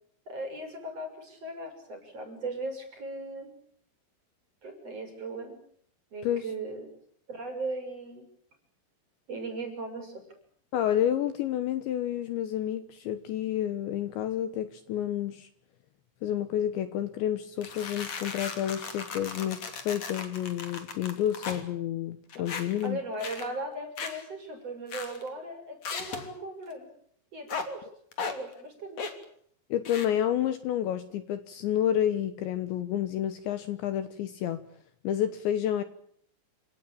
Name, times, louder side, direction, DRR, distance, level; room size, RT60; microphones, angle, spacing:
voice 1, 0.3-3.5 4.6-5.6 6.1-6.9 7.3-8.3 9.3-10.3 22.4-22.5 22.8-26.9 27.3-27.9 28.2-29.0, right 2 dB, 30° right, 5 dB, 6.8 m, -38 dB
voice 2, 10.7-15.5 16.2-23.0 29.7-34.6 35.0-35.8, left 10 dB, 70° left, 11 dB, 3.1 m, -30 dB
sound 1, 17.6-21.6 22.3-22.9 23.2-23.5 24.0-24.3 24.9-25.3 25.8-26.3 27.5-27.7 28.1-28.4 29.0-29.2 29.9-30.1, left 5 dB, 40° left, 3.4 m, -37 dB
29.5 x 18.5 x 8.8 m, 0.64 s
omnidirectional pair, 6.0 m